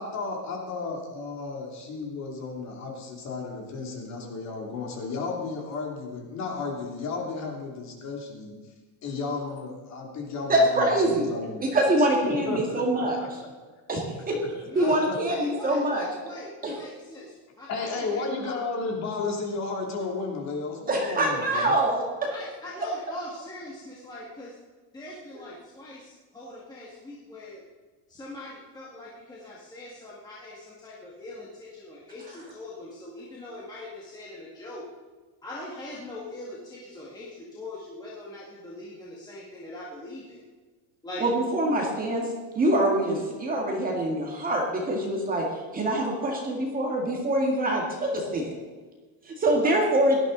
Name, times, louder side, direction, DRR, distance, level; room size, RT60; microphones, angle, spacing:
voice 1, 0.0-8.7 9.0-13.5 14.8-15.2 17.7-21.7, left 4 dB, 35° left, 0 dB, 2.9 m, -33 dB
voice 2, 10.5-11.3 11.6-13.2 13.9-14.4 14.8-16.1 16.6-16.7 20.9-22.3 41.2-42.3 42.6-48.5 49.3-50.2, right 1 dB, 20° right, 0 dB, 2.0 m, -24 dB
voice 3, 14.6-16.5 16.8-18.6 21.5-21.6 22.3-24.5 24.9-27.6 28.1-34.8 35.4-40.4 41.0-41.2 49.6-49.7, left 2 dB, 10° left, -6 dB, 1.9 m, -42 dB
17.5 x 12.5 x 4.0 m, 1.4 s
cardioid pair, 175°, 46 cm